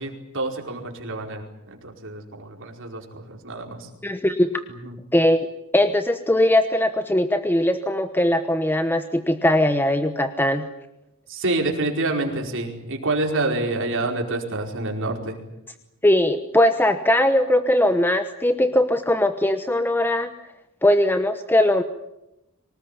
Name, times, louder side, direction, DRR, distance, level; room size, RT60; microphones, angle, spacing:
voice 1, 0.0-3.9 4.8-4.9 11.3-15.4, right 2 dB, 60° right, 2 dB, 4.9 m, -27 dB
voice 2, 4.0-4.5 5.1-5.5 5.7-10.6 16.0-20.3 20.8-21.8, left 1 dB, 10° left, 9 dB, 1.0 m, -20 dB
25.0 x 19.5 x 9.9 m, 0.92 s
head